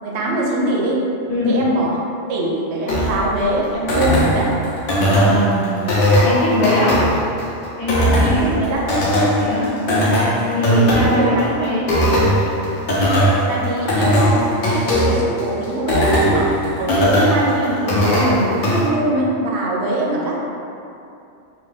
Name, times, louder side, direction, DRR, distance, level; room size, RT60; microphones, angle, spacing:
voice 1, 0.0-1.0 1.4-2.0 2.3-4.5 8.2-8.8 9.9-10.1 10.7-11.7 13.5-20.4, right 1 dB, 80° right, -3 dB, 0.9 m, -22 dB
sound 1, 2.9-18.9, equal, 60° left, 0.7 m, -19 dB
voice 2, 4.9-6.9 7.8-8.6 9.4-9.7 10.5-11.8, left 1 dB, 85° left, -11 dB, 1.2 m, -22 dB
2.8 x 2.2 x 3.2 m, 2.6 s
omnidirectional pair, 1.1 m